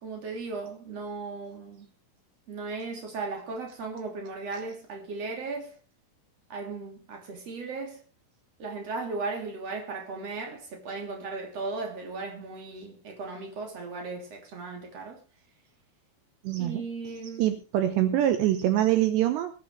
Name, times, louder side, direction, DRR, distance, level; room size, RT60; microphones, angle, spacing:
voice 1, 0.0-1.9 2.5-5.7 6.5-8.0 8.6-15.2 16.6-17.5 18.9-19.0, right 3 dB, 35° right, 3.7 m, -36 dB
voice 2, 16.4-16.8 17.4-19.5, right 12 dB, 75° right, 2.9 m, -24 dB
22.5 x 10.5 x 3.3 m
omnidirectional pair, 5.5 m